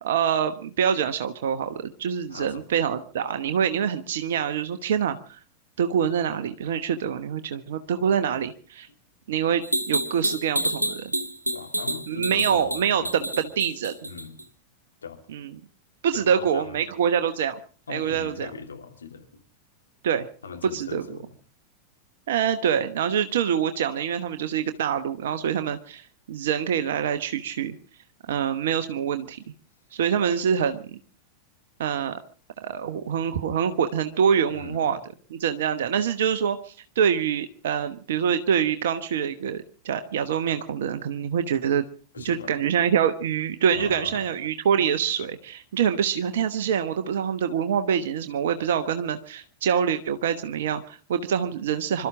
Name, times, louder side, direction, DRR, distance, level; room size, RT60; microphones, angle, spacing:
voice 1, 0.0-5.4 5.8-8.9 9.3-11.1 12.1-14.0 15.3-15.5 16.0-17.6 17.9-18.5 20.0-20.3 20.7-21.0 22.3-27.7 28.3-29.4 29.9-31.0 31.8-32.2 32.6-35.0 35.3-41.8 42.2-52.1, right 8 dB, 60° right, 9 dB, 1.0 m, -25 dB
voice 2, 2.3-2.7 11.5-13.1 14.0-14.4 15.0-15.2 16.1-16.8 17.9-19.4 20.4-21.4 34.5-34.9 42.1-42.7 43.7-44.3, left 5 dB, 70° left, 3 dB, 2.8 m, -39 dB
sound 1, 9.6-14.4, right 1 dB, 85° right, 1.3 m, -28 dB
26.5 x 13.0 x 3.7 m, 0.39 s
figure-of-eight pair, 90°, 0 cm